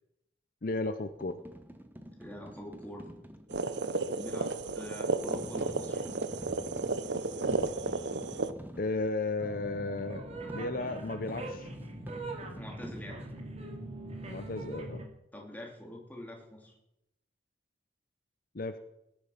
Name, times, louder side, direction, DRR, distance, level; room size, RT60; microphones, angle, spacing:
voice 1, 0.6-1.4 8.8-10.2 10.5-11.7 14.3-15.0 18.5-18.8, left 3 dB, 50° left, 10 dB, 0.7 m, -34 dB
sound 1, 1.1-3.9 5.2-9.0 10.5-13.5, equal, 10° right, 1.2 m, -47 dB
voice 2, 2.2-3.1 4.1-6.0 12.6-13.2 15.3-16.8, left 1 dB, 10° left, 0 dB, 3.1 m, -44 dB
sound 2, 3.5-8.5, right 3 dB, 75° right, 0.8 m, -33 dB
sound 3, 9.4-15.1, right 2 dB, 35° right, 2.4 m, -41 dB
19.0 x 10.5 x 5.8 m, 0.87 s
head